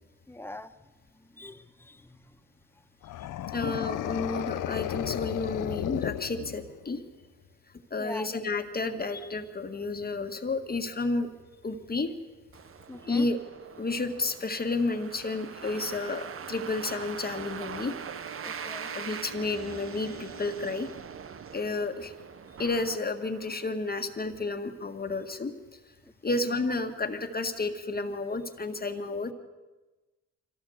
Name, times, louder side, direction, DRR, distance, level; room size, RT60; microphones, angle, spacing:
voice 1, 0.3-0.7 1.3-2.2 8.0-8.3 12.9-13.3 18.4-18.9, left 2 dB, 5° left, 11 dB, 1.0 m, -42 dB
sound 1, 3.0-6.9, left 13 dB, 75° left, 0.7 m, -33 dB
voice 2, 3.5-7.0 7.9-11.3 11.6-12.1 13.1-13.4 13.8-18.0 18.9-20.9 21.5-22.1 22.6-25.5 26.2-29.3, left 3 dB, 30° left, 6 dB, 1.8 m, -31 dB
sound 2, 12.5-23.7, right 7 dB, 45° right, 0.9 m, -42 dB
Wind instrument woodwind instrument, 16.9-21.4, right 5 dB, 65° right, 3.1 m, -50 dB
25.0 x 17.5 x 8.0 m, 1.2 s
cardioid pair, 115°, 32 cm